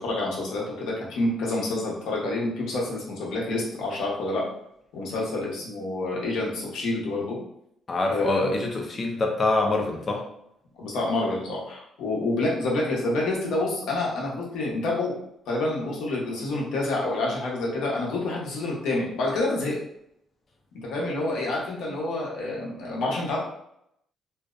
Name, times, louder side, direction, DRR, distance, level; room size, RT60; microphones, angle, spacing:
voice 1, 0.0-4.4 4.9-7.4 8.1-8.5 10.8-15.1 15.5-19.8 20.8-23.4, left 2 dB, 80° left, -4 dB, 0.8 m, -28 dB
voice 2, 7.9-10.2, left 2 dB, 25° left, 2 dB, 0.4 m, -25 dB
2.6 x 2.0 x 2.4 m, 0.75 s
cardioid pair, 165°, 0 cm